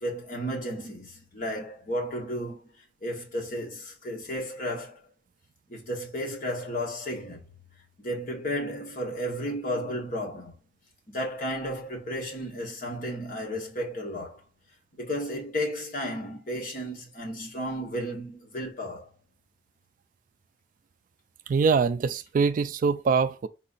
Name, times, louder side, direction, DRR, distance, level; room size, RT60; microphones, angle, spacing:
voice 1, 0.0-2.7 3.0-5.1 5.7-7.4 8.0-10.5 11.1-14.4 15.0-19.1, equal, 50° left, 1.6 m, -33 dB
voice 2, 21.5-23.5, right 5 dB, 50° right, 0.3 m, -23 dB
4.1 x 2.8 x 4.0 m
head